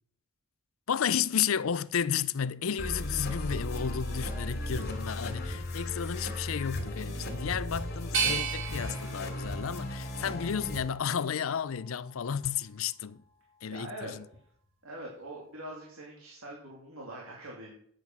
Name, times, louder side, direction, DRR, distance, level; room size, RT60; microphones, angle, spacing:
voice 1, 0.9-13.2 13.6-14.3, left 8 dB, 70° left, 0.5 m, -32 dB
sound 1, 2.8-10.8, left 1 dB, 50° left, 2.7 m, -36 dB
sound 2, 8.1-11.1 11.6-12.4, right 6 dB, 60° right, 3.1 m, -35 dB
voice 2, 13.7-14.1 14.8-17.7, right 1 dB, 85° right, 2.8 m, -43 dB
9.7 x 9.6 x 6.1 m
head